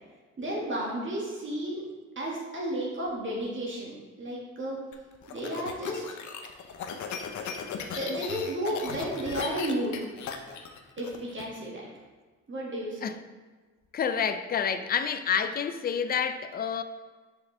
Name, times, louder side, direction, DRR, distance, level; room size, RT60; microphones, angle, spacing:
voice 1, 0.4-1.8 2.2-3.9 4.2-4.8 5.3-6.0 7.9-10.0 11.0-11.8 12.5-13.0, right 1 dB, 40° right, -4 dB, 1.8 m, -32 dB
sound 1, 4.9-11.4, left 6 dB, 70° left, 0.7 m, -37 dB
voice 2, 13.9-16.8, left 7 dB, 30° left, 10 dB, 0.4 m, -28 dB
6.6 x 4.8 x 3.4 m, 1.4 s
cardioid pair, 90°, 30 cm